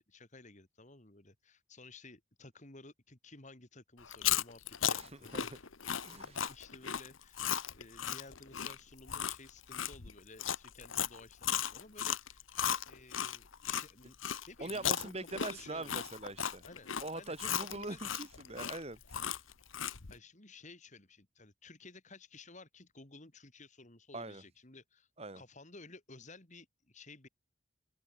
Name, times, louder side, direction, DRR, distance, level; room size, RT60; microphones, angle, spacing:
voice 1, 0.0-5.6 6.3-7.4 7.7-12.5 12.9-14.2 14.5-15.9 16.6-18.1 20.1-25.1 25.3-27.3, left 3 dB, 35° left, 2.6 m, -55 dB
Chewing mastication, 4.0-13.9 14.2-20.1, left 9 dB, 80° left, 1.3 m, -36 dB
voice 2, 5.0-5.6 6.0-6.5 14.6-16.6 17.0-19.3 24.1-24.4 25.2-25.4, right 2 dB, 30° right, 2.9 m, -43 dB
head